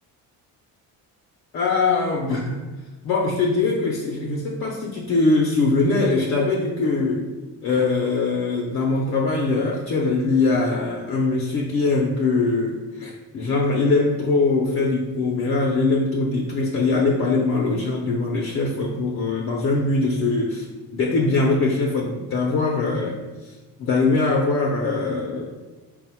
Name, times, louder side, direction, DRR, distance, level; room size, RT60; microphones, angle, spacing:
voice 1, 1.5-2.6 3.0-7.2 7.6-20.7 20.9-23.1 23.4-25.4, left 3 dB, 40° left, -1 dB, 0.4 m, -22 dB
4.8 x 2.0 x 4.2 m, 1.2 s
cardioid pair, 175°, 35 cm